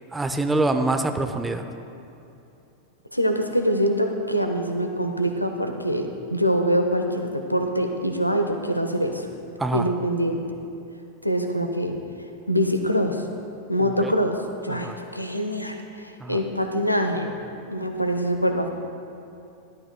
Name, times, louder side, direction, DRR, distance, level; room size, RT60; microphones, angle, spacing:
voice 1, 0.1-1.6 9.6-9.9 13.8-14.1 14.7-15.0 16.2-16.4, right 2 dB, 10° right, 7 dB, 0.7 m, -25 dB
voice 2, 3.1-9.3 9.7-10.5 11.2-12.0 12.5-13.2 13.7-17.3 17.7-18.7, equal, 90° left, 5 dB, 0.9 m, -24 dB
18.5 x 12.0 x 2.3 m, 2.8 s
figure-of-eight pair, 90°, 0 cm